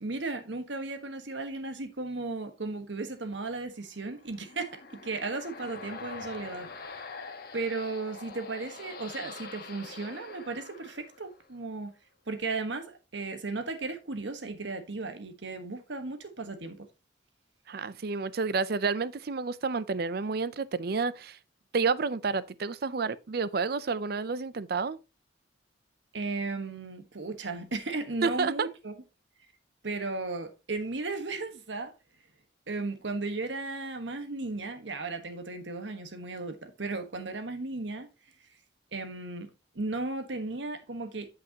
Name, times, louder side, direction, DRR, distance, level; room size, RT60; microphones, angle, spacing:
voice 1, 0.0-7.0 7.5-11.9 12.3-16.9 26.1-28.9 29.8-31.9 32.7-38.1 38.9-39.5 39.7-41.3, right 3 dB, 75° right, 1.3 m, -35 dB
sound 1, 4.0-11.6, left 4 dB, 55° left, 1.3 m, -44 dB
voice 2, 17.7-21.4 21.7-25.0 28.2-28.7, right 4 dB, 55° right, 0.5 m, -30 dB
8.4 x 7.5 x 2.9 m
head